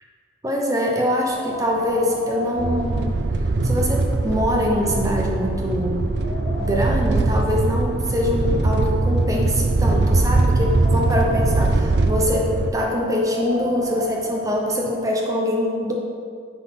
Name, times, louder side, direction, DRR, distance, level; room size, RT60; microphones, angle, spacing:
voice 1, 0.4-3.2 3.6-6.1 6.6-15.9, left 1 dB, 20° right, -1 dB, 0.9 m, -23 dB
Wind, 1.1-3.8 4.1-4.2 4.9-5.0 5.5-7.1 8.0-9.5 10.1-11.7 12.9-15.1, equal, 45° left, 1.5 m, -34 dB
sound 1, 2.6-12.7, right 2 dB, 65° right, 0.5 m, -21 dB
9.5 x 4.2 x 5.8 m, 2.2 s
head